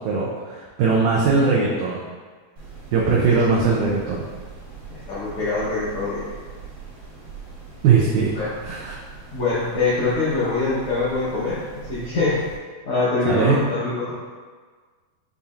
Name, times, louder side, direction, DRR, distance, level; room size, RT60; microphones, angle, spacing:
voice 1, 0.0-2.0 2.9-4.2 7.8-8.4 8.6-9.0 13.3-13.6, right 5 dB, 80° right, -5 dB, 1.9 m, -20 dB
sound 1, 2.6-12.6, right 4 dB, 45° right, 1.7 m, -41 dB
voice 2, 4.9-6.2 8.3-8.5 9.3-11.6 11.9-12.4 12.8-14.1, left 3 dB, 80° left, -10 dB, 1.3 m, -23 dB
6.7 x 2.7 x 2.4 m, 1.5 s
omnidirectional pair, 3.9 m